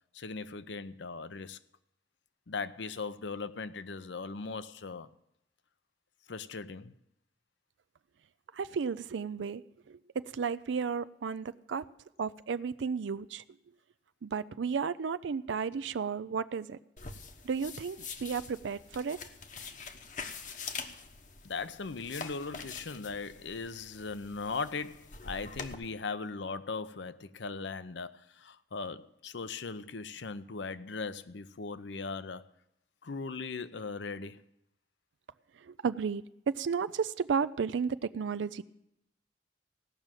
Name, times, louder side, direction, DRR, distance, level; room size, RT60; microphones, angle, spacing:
voice 1, 0.1-1.6 2.5-5.1 6.3-6.9 21.4-32.5 33.0-34.4, left 4 dB, 75° left, 0.7 m, -39 dB
voice 2, 8.5-11.9 12.2-13.4 14.2-16.8 17.4-19.2 35.6-38.6, right 6 dB, 80° right, 0.4 m, -33 dB
sound 1, 17.0-25.7, left 5 dB, 45° left, 1.0 m, -45 dB
16.5 x 6.3 x 8.9 m
head